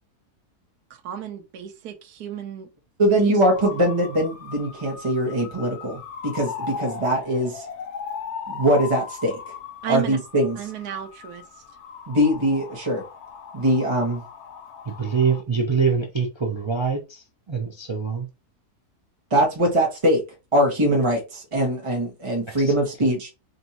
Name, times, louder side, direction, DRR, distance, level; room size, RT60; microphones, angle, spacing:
voice 1, 1.0-2.7 3.2-3.3 3.7-3.8 9.8-10.2 10.6-11.5, right 10 dB, 75° right, 1.2 m, -32 dB
voice 2, 3.0-7.6 8.5-9.3 9.9-10.6 12.1-13.0 13.5-14.2 19.3-20.2 20.5-23.3, equal, 20° right, 1.0 m, -22 dB
sound 1, 3.5-15.4, left 6 dB, 55° left, 0.8 m, -38 dB
voice 3, 14.9-18.3 22.6-22.7, right 5 dB, 45° right, 0.3 m, -24 dB
5.1 x 2.6 x 2.8 m
omnidirectional pair, 1.7 m